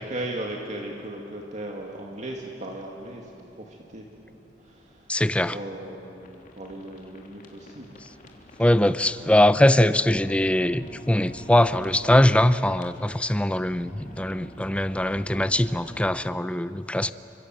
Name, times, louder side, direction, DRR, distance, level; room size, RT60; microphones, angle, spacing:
voice 1, 0.0-4.0 4.6-5.1 5.4-8.0 9.2-9.4, right 1 dB, 40° right, 0 dB, 2.3 m, -37 dB
voice 2, 5.1-5.6 8.6-17.1, left 1 dB, 5° left, 13 dB, 0.6 m, -21 dB
sound 1, 6.1-16.1, left 1 dB, 50° left, 3.3 m, -48 dB
29.5 x 25.5 x 7.8 m, 2.9 s
head